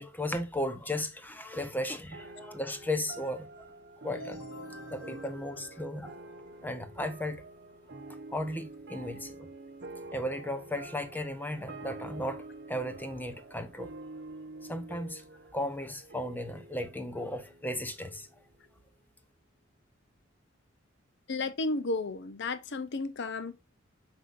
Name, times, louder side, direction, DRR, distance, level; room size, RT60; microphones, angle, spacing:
voice 1, 0.0-3.5 4.0-4.4 4.8-6.1 6.6-7.4 8.3-9.5 10.1-13.9 14.6-15.2 15.5-18.3, left 1 dB, 10° left, 0.9 m, -35 dB
sound 1, 2.1-18.9, right 2 dB, 55° right, 0.9 m, -47 dB
sound 2, 4.1-6.8, left 1 dB, 90° left, 3.7 m, -48 dB
voice 2, 21.3-23.6, left 3 dB, 60° left, 0.6 m, -33 dB
7.7 x 4.9 x 2.5 m
head